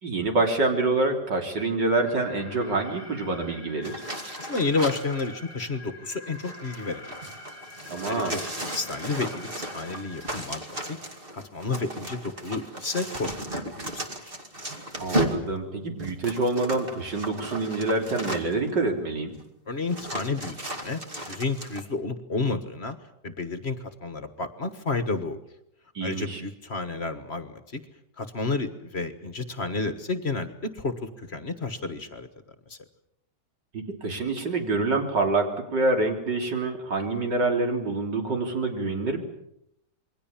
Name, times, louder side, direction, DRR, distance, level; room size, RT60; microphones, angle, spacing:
voice 1, 0.0-4.0 7.9-8.3 15.0-19.4 25.9-26.4 33.7-39.2, right 3 dB, 85° right, 3 dB, 4.1 m, -26 dB
Alarm, 2.0-10.4, left 2 dB, 15° right, 3.7 m, -45 dB
sound 1, 3.8-5.3 6.3-18.7 19.4-19.5 19.9-21.8, right 1 dB, 30° right, 2.6 m, -35 dB
voice 2, 4.4-7.1 8.1-11.0 11.3-13.6 13.9-14.4 19.7-21.0 21.3-23.0 23.2-25.4 26.0-27.8 28.2-32.3 32.7-32.8, left 3 dB, 40° left, 10 dB, 1.6 m, -31 dB
28.0 x 22.5 x 7.3 m, 0.77 s
omnidirectional pair, 1.9 m